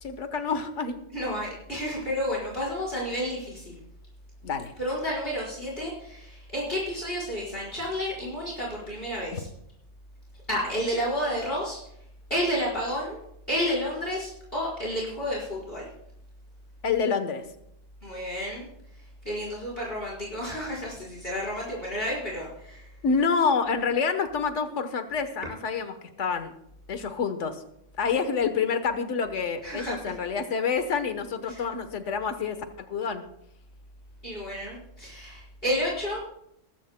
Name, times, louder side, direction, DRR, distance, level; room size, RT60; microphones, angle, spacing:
voice 1, 0.0-1.0 4.4-4.7 9.3-9.4 16.8-17.4 23.0-26.5 26.9-27.6 28.0-33.2, left 5 dB, 70° left, 9 dB, 1.4 m, -27 dB
voice 2, 1.1-3.8 4.8-9.5 10.5-11.8 12.3-13.2 13.5-15.8 18.0-18.7 19.2-22.9 29.6-30.1 31.5-31.6 34.2-36.2, equal, 50° left, -5 dB, 5.1 m, -31 dB
20.5 x 15.5 x 2.2 m, 0.77 s
omnidirectional pair, 1.3 m